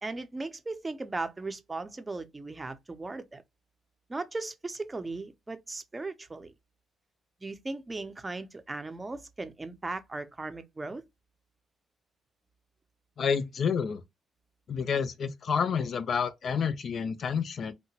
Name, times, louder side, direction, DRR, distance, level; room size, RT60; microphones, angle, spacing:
voice 1, 0.0-3.4 4.1-6.5 7.4-11.0, right 3 dB, 20° right, 0.5 m, -37 dB
voice 2, 13.2-14.0 14.7-17.7, left 6 dB, 55° left, 0.4 m, -29 dB
2.7 x 2.1 x 2.8 m
cardioid pair, 90°, 0 cm